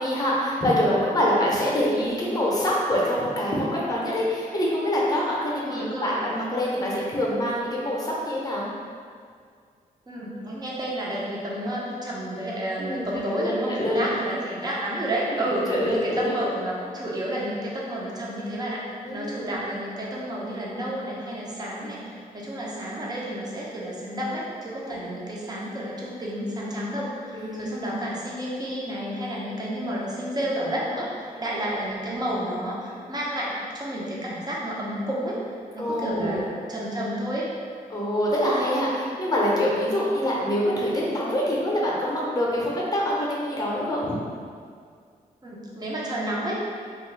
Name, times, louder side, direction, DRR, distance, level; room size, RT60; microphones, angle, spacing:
voice 1, 0.0-8.7 12.8-14.1 15.3-16.4 19.0-19.6 27.3-27.9 35.8-36.5 37.9-44.2, left 1 dB, 25° left, -4 dB, 0.7 m, -25 dB
voice 2, 5.6-6.1 10.1-35.4 35.7-37.5 45.4-46.7, right 1 dB, 25° right, -5 dB, 0.7 m, -31 dB
2.6 x 2.3 x 3.2 m, 2.1 s
cardioid pair, 75°, 15 cm